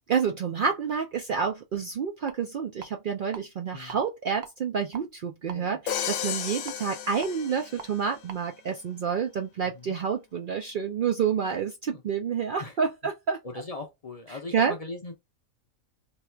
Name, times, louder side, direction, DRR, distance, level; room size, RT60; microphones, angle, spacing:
voice 1, 0.1-13.4 14.5-14.7, right 6 dB, 80° right, 0.4 m, -29 dB
sound 1, 2.3-2.4 2.8-3.4 3.7-4.0 4.4-5.6 6.1-7.9 8.3-8.4, right 7 dB, 60° right, 0.8 m, -43 dB
Crash cymbal, 5.9-8.1, left 9 dB, 65° left, 0.9 m, -33 dB
voice 2, 9.6-10.0 11.9-12.0 12.6-12.8 13.4-15.1, left 3 dB, 40° left, 0.5 m, -40 dB
3.1 x 2.3 x 4.3 m
omnidirectional pair, 1.4 m